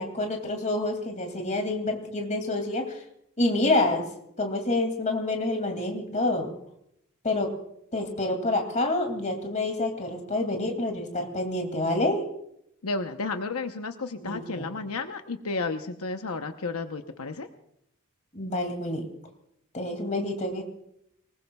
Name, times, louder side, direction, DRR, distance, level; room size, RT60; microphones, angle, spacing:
voice 1, 0.0-3.0 3.4-4.1 4.4-6.5 7.2-7.6 7.9-12.3 14.2-14.7 18.3-19.1 19.7-20.6, left 2 dB, 35° left, 4 dB, 2.5 m, -28 dB
voice 2, 3.4-3.8 12.8-17.5, left 3 dB, 80° left, 6 dB, 0.9 m, -32 dB
24.5 x 20.0 x 2.4 m, 0.76 s
head